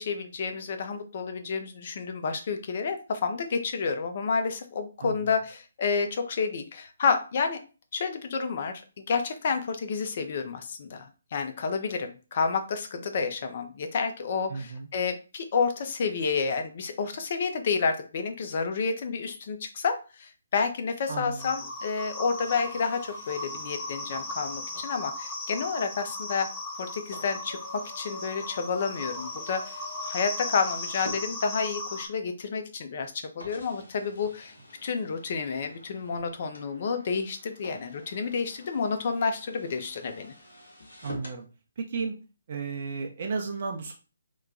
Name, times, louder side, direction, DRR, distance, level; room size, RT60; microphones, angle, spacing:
voice 1, 0.0-7.6 7.9-8.8 9.1-26.5 26.8-34.5 34.8-40.3, left 5 dB, 45° left, 7 dB, 0.6 m, -30 dB
voice 2, 5.0-5.3 14.5-14.9 21.1-21.5 41.0-41.5 41.8-42.1 42.5-43.9, right 4 dB, 50° right, 2 dB, 0.6 m, -33 dB
sound 1, 21.4-32.1, left 2 dB, 15° left, 0.8 m, -37 dB
sound 2, 22.4-31.9 32.6-32.7 33.4-41.4, left 2 dB, 80° left, 1.2 m, -49 dB
3.1 x 2.2 x 3.8 m, 0.34 s
figure-of-eight pair, 145°, 0 cm